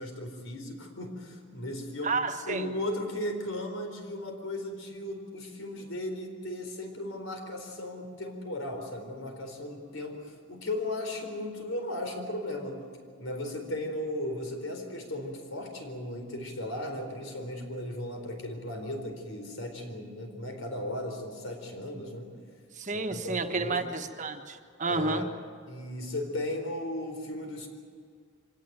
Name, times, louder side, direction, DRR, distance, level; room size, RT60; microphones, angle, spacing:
voice 1, 0.0-2.2 2.5-12.9 13.2-22.3 22.9-23.8 24.9-25.3 25.7-27.7, left 1 dB, 85° left, 4 dB, 4.3 m, -36 dB
voice 2, 2.0-2.7 22.8-25.2, right 3 dB, 35° right, 6 dB, 1.3 m, -31 dB
24.5 x 18.0 x 9.3 m, 2.1 s
head